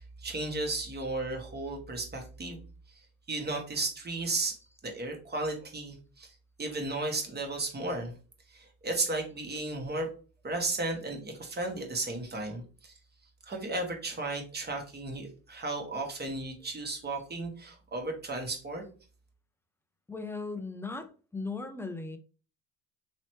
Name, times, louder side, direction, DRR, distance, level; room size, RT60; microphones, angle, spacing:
voice 1, 0.0-2.6 2.9-4.5 4.8-8.1 8.5-10.1 10.4-12.9 13.4-18.8, right 2 dB, 25° right, 2 dB, 1.2 m, -34 dB
voice 2, 20.1-22.2, left 3 dB, 5° left, 8 dB, 0.5 m, -37 dB
3.1 x 3.0 x 3.0 m, 0.38 s
supercardioid pair, 80°, 40 cm